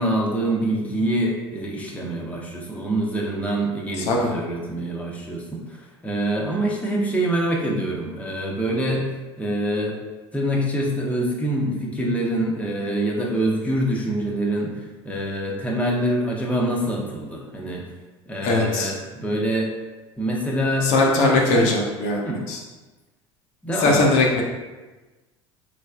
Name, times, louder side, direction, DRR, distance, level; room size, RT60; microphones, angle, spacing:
voice 1, 0.0-9.1 9.4-10.0 10.3-17.9 18.3-19.7 20.2-20.9 21.3-21.8 22.2-22.4 23.6-24.0 24.2-24.3, right 1 dB, 10° left, -2 dB, 0.8 m, -25 dB
voice 2, 18.4-18.9 20.8-22.2 22.5-22.6 23.8-24.4, left 2 dB, 55° left, -1 dB, 0.7 m, -19 dB
3.9 x 3.2 x 2.4 m, 1.2 s
figure-of-eight pair, 75°, 15 cm